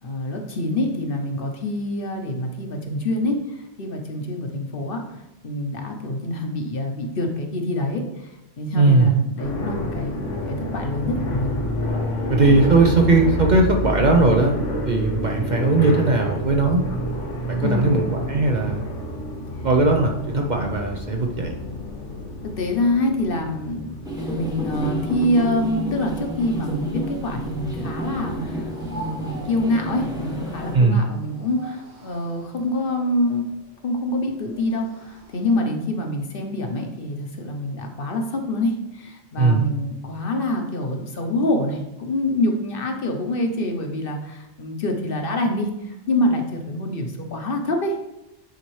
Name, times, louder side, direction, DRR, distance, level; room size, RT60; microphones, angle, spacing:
voice 1, 0.0-5.0 5.4-8.0 8.6-11.6 17.6-18.0 22.6-23.9 24.3-33.5 33.8-48.0, left 1 dB, 55° left, 3 dB, 0.9 m, -26 dB
voice 2, 8.7-9.1 12.3-14.6 14.8-16.8 17.5-18.8 19.6-21.5 30.7-31.1 39.4-39.7, right 3 dB, 50° right, 2 dB, 0.6 m, -18 dB
sound 1, 9.4-25.1, left 1 dB, 85° left, 1.5 m, -29 dB
sound 2, 24.0-30.8, equal, 5° right, 0.9 m, -30 dB
sound 3, 28.7-35.7, right 3 dB, 65° right, 1.3 m, -44 dB
9.2 x 4.0 x 3.2 m, 0.91 s
omnidirectional pair, 1.2 m